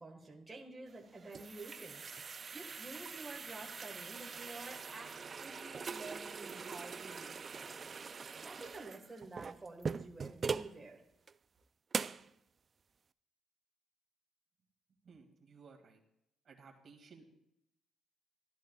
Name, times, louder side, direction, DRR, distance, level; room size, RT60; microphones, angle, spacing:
voice 1, 0.0-7.9 8.4-11.0, right 2 dB, 25° right, 0 dB, 1.6 m, -50 dB
sound 1, 0.9-10.8 11.3-11.4 11.9-12.3, right 5 dB, 40° right, 0.3 m, -42 dB
voice 2, 15.0-16.0 16.4-17.3, right 5 dB, 55° right, 1 dB, 2.1 m, -58 dB
14.5 x 10.5 x 2.3 m, 0.81 s
cardioid pair, 90°, 0 cm